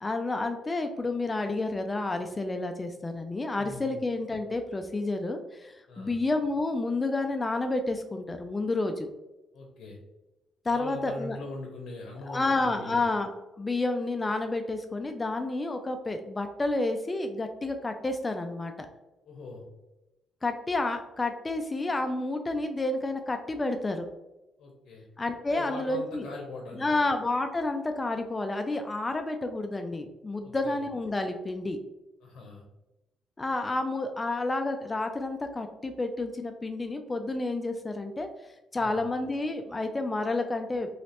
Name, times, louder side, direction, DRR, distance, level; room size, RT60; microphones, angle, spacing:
voice 1, 0.0-9.1 10.7-11.4 12.3-13.3 13.6-18.9 20.4-24.1 25.2-26.2 26.7-31.8 33.4-40.9, left 2 dB, 25° left, 6 dB, 0.3 m, -30 dB
voice 2, 3.5-4.0 5.9-6.2 9.5-10.0 10.7-13.0 19.3-19.7 24.6-25.1 25.5-27.1 30.4-30.8 32.2-32.6 38.7-39.1, left 2 dB, 75° left, 0 dB, 0.7 m, -42 dB
3.1 x 3.0 x 2.9 m, 1.0 s
cardioid pair, 90°, 0 cm